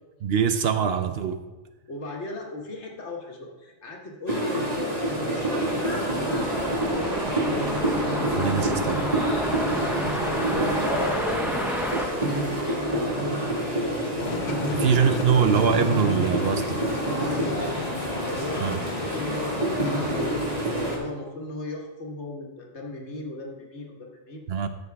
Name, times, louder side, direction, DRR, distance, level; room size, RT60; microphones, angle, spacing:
voice 1, 0.2-1.4 8.4-9.1 14.8-16.9 18.6-18.8 24.5-24.7, right 7 dB, 65° right, 9 dB, 0.8 m, -23 dB
voice 2, 1.9-7.9 9.7-12.4 12.7-13.4 13.7-13.9 14.4-15.3 17.2-17.9 18.2-19.8 20.1-24.4, left 2 dB, 70° left, 0 dB, 1.8 m, -36 dB
sound 1, 4.3-21.0, right 1 dB, 35° right, 1.9 m, -27 dB
sound 2, 5.0-13.2, equal, ahead, 0.7 m, -32 dB
sound 3, 14.2-20.6, left 6 dB, 55° left, 0.6 m, -36 dB
13.0 x 6.6 x 3.5 m, 1.2 s
omnidirectional pair, 1.2 m